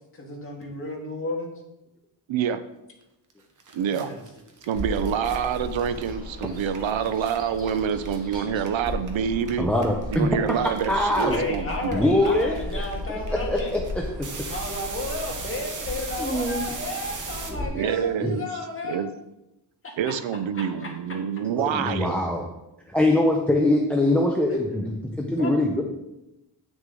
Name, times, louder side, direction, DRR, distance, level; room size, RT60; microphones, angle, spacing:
voice 1, 0.1-1.5 3.9-4.2 10.4-10.5 11.3-13.7 14.5-19.0 19.8-20.1 20.5-21.2 24.5-24.6 25.4-25.5, left 2 dB, 30° left, -1 dB, 1.7 m, -33 dB
voice 2, 2.3-2.6 3.7-4.1 4.7-9.7 10.1-12.0 17.7-18.5 18.8-19.1 20.0-22.2, right 8 dB, 75° right, 12 dB, 0.6 m, -27 dB
sound 1, 3.3-3.4 3.6-9.1 9.4-17.5, right 4 dB, 40° right, 1.1 m, -39 dB
Bird vocalization bird call bird song, 4.7-17.6, left 1 dB, 20° right, 1.9 m, -36 dB
voice 3, 9.6-10.3 10.9-11.4 11.9-14.0 16.2-16.7 17.5-17.7 18.2-18.3 21.6-22.4 22.9-25.8, left 1 dB, 5° left, 1 dB, 0.6 m, -23 dB
9.3 x 6.2 x 3.8 m, 0.93 s
wide cardioid pair, 165°, 47 cm